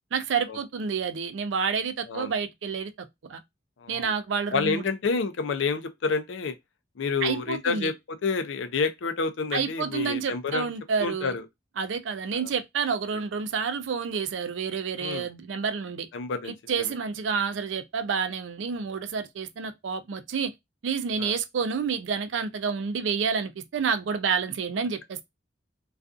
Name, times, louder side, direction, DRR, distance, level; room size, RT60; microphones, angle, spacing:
voice 1, 0.1-2.9 3.3-3.4 3.9-4.8 7.2-7.9 9.5-11.4 11.8-16.1 16.5-20.5 20.8-25.2, right 6 dB, 75° right, 0.4 m, -29 dB
voice 2, 3.8-4.1 4.5-6.5 7.0-10.7 11.0-11.4 12.3-12.5 15.0-15.3 16.1-16.9 21.2-21.3, left 4 dB, 85° left, 0.4 m, -29 dB
2.4 x 2.4 x 2.3 m
head